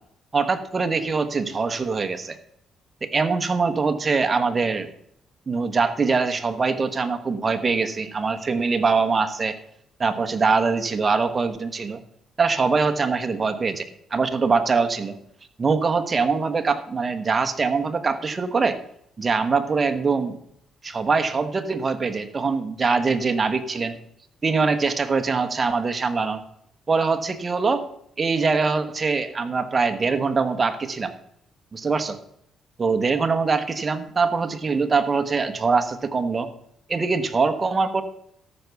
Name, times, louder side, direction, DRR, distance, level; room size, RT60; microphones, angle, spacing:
voice 1, 0.3-2.4 3.0-4.9 5.5-9.5 10.0-12.0 12.4-13.8 14.1-15.2 15.6-18.8 19.2-20.4 20.8-24.0 24.4-26.4 26.9-27.9 28.2-31.1 31.7-32.2 32.8-36.5 36.9-38.0, right 4 dB, 35° right, 8 dB, 1.2 m, -23 dB
13.5 x 6.1 x 7.0 m, 0.72 s
cardioid pair, 90°, 0 cm